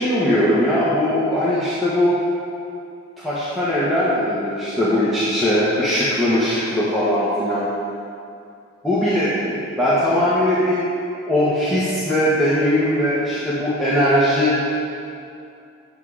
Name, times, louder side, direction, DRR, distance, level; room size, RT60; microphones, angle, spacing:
voice 1, 0.0-2.2 3.2-7.7 8.8-10.9 11.3-14.6, equal, ahead, -12 dB, 1.4 m, -20 dB
9.5 x 6.6 x 5.0 m, 2.5 s
head